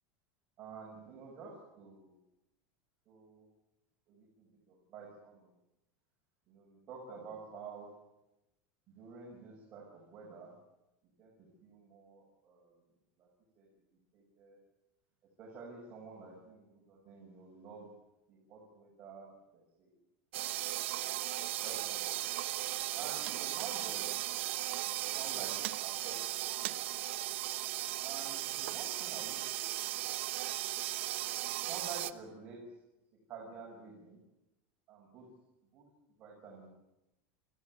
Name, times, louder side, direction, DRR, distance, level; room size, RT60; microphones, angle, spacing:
voice 1, 0.6-2.2 3.1-3.5 4.1-5.5 6.5-7.9 8.9-10.5 11.2-11.3 11.6-12.7 13.2-13.3 13.6-13.7 14.1-14.6 15.4-17.9 18.3-20.0 20.9-22.3 22.9-24.1 25.2-26.2 26.5-27.0 28.0-30.0 31.6-32.7 33.3-34.2 34.9-35.3 35.7-35.8 36.2-36.7, right 5 dB, 25° right, -3 dB, 6.3 m, -50 dB
sound 1, 20.3-32.1, right 16 dB, 75° right, 1.1 m, -36 dB
29.5 x 15.0 x 9.6 m, 0.94 s
supercardioid pair, 180°, 7 cm